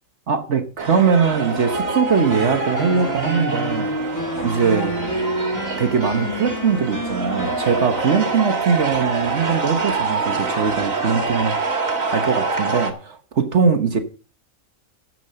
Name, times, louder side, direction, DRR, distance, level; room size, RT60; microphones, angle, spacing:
voice 1, 0.3-3.9 4.4-4.9 5.8-11.7 12.1-14.0, right 6 dB, 60° right, 1.4 m, -21 dB
sound 1, 0.8-12.9, right 3 dB, 75° right, 2.2 m, -25 dB
sound 2, 2.3-7.8, equal, 15° left, 1.6 m, -28 dB
9.5 x 7.8 x 6.7 m
omnidirectional pair, 1.4 m